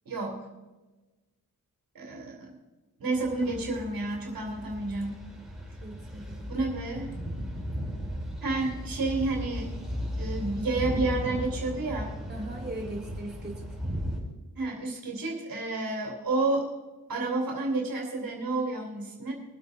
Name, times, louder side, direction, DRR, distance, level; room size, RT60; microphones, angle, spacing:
voice 1, 0.0-0.4 1.9-2.6 3.0-5.2 6.5-7.1 8.4-9.7 10.2-12.2 14.5-16.7 17.1-19.3, right 2 dB, 75° right, 0 dB, 2.9 m, -30 dB
sound 1, 3.1-14.2, equal, ahead, 5.3 m, -36 dB
voice 2, 5.8-6.5 12.3-13.7, right 1 dB, 30° right, -1 dB, 2.7 m, -39 dB
22.0 x 8.2 x 3.8 m, 1.2 s
cardioid pair, 95°, 35 cm